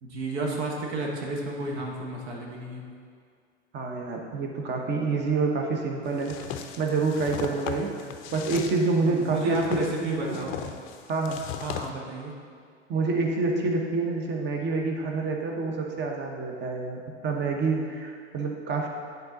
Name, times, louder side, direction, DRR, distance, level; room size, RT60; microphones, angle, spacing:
voice 1, 0.0-2.8 9.1-10.6 11.6-12.3, right 2 dB, 65° right, -1 dB, 1.3 m, -32 dB
voice 2, 3.7-7.9 8.3-10.4 11.1-11.4 12.9-18.9, right 3 dB, 30° right, 2 dB, 1.0 m, -27 dB
sound 1, 6.2-11.9, left 9 dB, 35° left, 0.5 m, -38 dB
9.1 x 4.0 x 4.0 m, 2.2 s
figure-of-eight pair, 90°, 36 cm